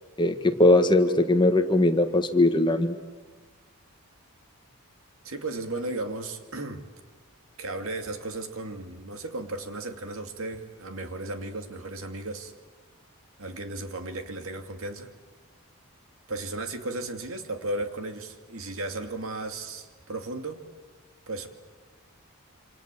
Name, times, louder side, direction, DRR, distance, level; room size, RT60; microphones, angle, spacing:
voice 1, 0.2-3.0, left 2 dB, 20° left, 7 dB, 1.5 m, -20 dB
voice 2, 5.2-6.8 7.6-12.5 13.4-15.1 16.3-20.6 21.3-21.5, right 2 dB, 65° right, 6 dB, 2.5 m, -35 dB
28.0 x 27.0 x 7.7 m, 1.3 s
head